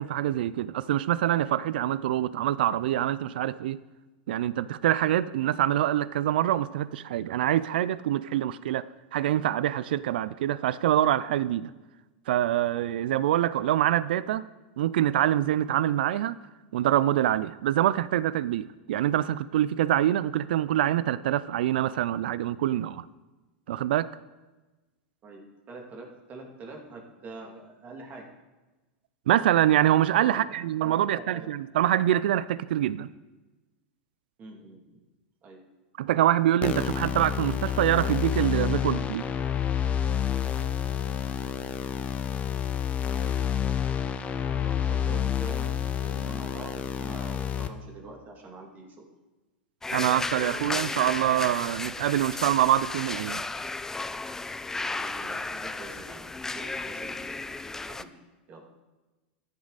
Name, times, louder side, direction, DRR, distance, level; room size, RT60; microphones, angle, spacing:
voice 1, 0.0-3.8 4.3-8.9 9.1-11.7 12.3-14.5 14.8-16.4 16.7-23.0 23.7-24.1 29.3-33.1 36.0-39.3 49.9-53.4, right 12 dB, 75° right, 0.4 m, -25 dB
voice 2, 25.2-28.2 30.2-30.4 30.8-31.5 34.4-35.0 35.4-35.6 36.1-36.2 44.5-49.0 54.7-56.3 56.5-57.4 57.8-58.1 58.5-58.6, right 3 dB, 30° right, 2.5 m, -45 dB
sound 1, 36.6-47.7, left 9 dB, 25° left, 0.8 m, -29 dB
sound 2, 49.8-58.0, left 3 dB, 10° left, 0.4 m, -34 dB
14.0 x 10.5 x 4.1 m
hypercardioid pair, 115°, 5 cm